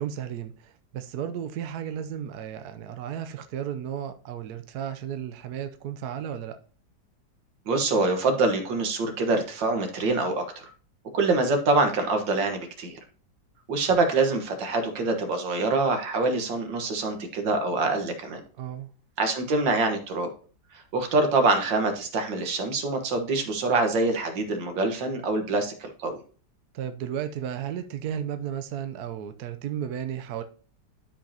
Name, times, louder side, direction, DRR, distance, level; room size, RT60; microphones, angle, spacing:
voice 1, 0.0-6.6 18.6-18.9 26.7-30.4, right 9 dB, 65° right, 1.2 m, -34 dB
voice 2, 7.7-10.6 11.1-13.0 13.7-18.4 19.2-20.3 20.7-25.7 26.0-26.1, right 3 dB, 85° right, 2.1 m, -25 dB
12.0 x 5.1 x 2.8 m
omnidirectional pair, 1.9 m